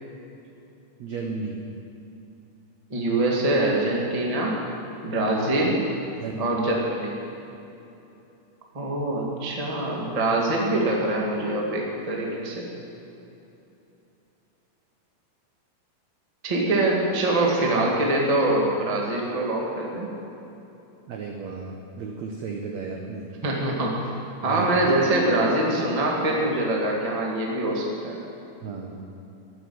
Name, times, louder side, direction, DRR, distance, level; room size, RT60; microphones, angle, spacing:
voice 1, 1.0-1.6 5.6-5.8 6.2-6.5 21.1-23.3 24.4-24.7 28.6-29.0, right 4 dB, 75° right, 1 dB, 1.6 m, -33 dB
voice 2, 2.9-4.5 5.0-5.8 6.4-7.2 8.7-12.7 16.4-20.1 23.4-24.1 24.4-28.2, right 2 dB, 25° right, -2 dB, 0.8 m, -24 dB
13.0 x 8.1 x 9.5 m, 2.9 s
omnidirectional pair, 4.4 m